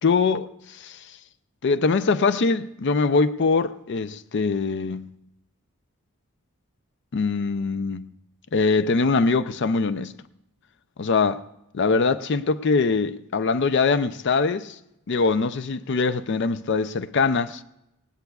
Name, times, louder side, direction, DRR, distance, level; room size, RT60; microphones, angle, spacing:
voice 1, 0.0-1.0 1.6-5.1 7.1-8.1 8.5-10.1 11.0-11.4 11.7-14.8 15.1-17.6, left 4 dB, 50° left, 0.4 m, -23 dB
19.5 x 18.0 x 2.3 m
head